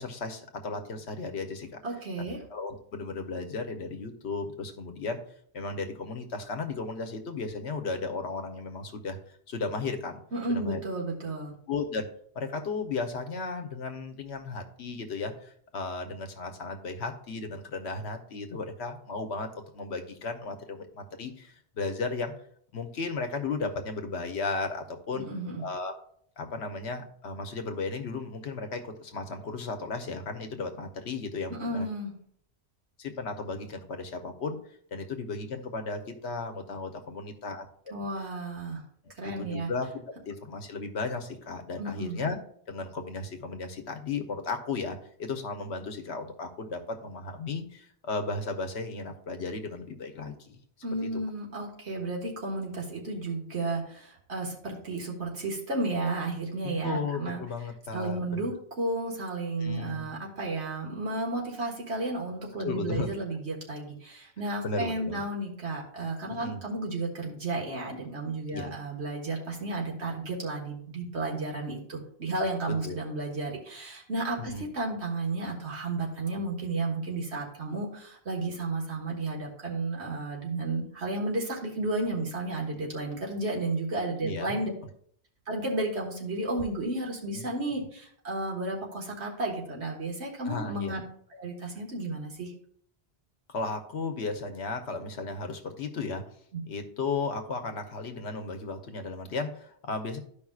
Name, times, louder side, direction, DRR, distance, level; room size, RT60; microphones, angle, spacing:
voice 1, 0.0-1.7 2.2-5.2 5.5-9.2 9.5-10.2 10.5-10.8 11.7-12.1 12.3-22.3 22.7-25.3 25.6-25.9 26.4-31.9 33.0-34.6 34.9-37.7 39.2-42.4 42.7-50.6 51.0-51.1 56.6-58.5 59.6-60.1 62.6-63.1 64.6-65.2 66.3-66.6 68.5-68.7 72.7-73.0 74.4-74.6 82.7-82.8 84.2-84.6 87.3-87.5 90.5-90.9 93.5-96.2 96.7-100.2, left 4 dB, 85° left, 6 dB, 1.2 m, -35 dB
voice 2, 1.8-2.4 10.3-11.5 25.2-25.6 31.5-32.1 37.9-38.8 39.2-39.7 41.8-42.2 50.8-57.4 57.9-84.7 85.5-91.0 91.3-92.5 96.5-96.6, right 2 dB, 80° right, -1 dB, 1.9 m, -33 dB
13.0 x 5.2 x 2.4 m, 0.63 s
omnidirectional pair, 1.1 m